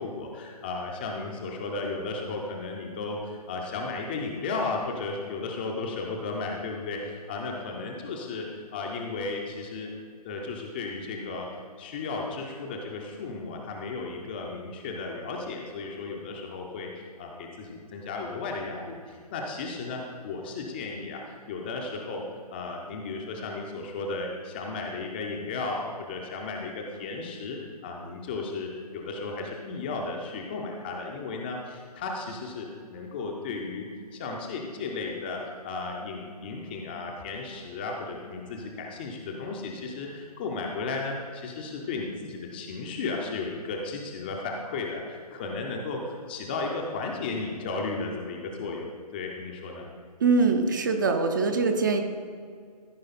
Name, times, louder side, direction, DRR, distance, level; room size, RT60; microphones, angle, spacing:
voice 1, 0.0-9.9 10.2-22.2 22.5-27.6 27.8-33.9 34.1-49.9, left 3 dB, 15° left, 0 dB, 0.5 m, -34 dB
voice 2, 50.2-52.0, right 4 dB, 30° right, 6 dB, 0.6 m, -23 dB
14.5 x 4.9 x 4.0 m, 2.1 s
figure-of-eight pair, 140°, 21 cm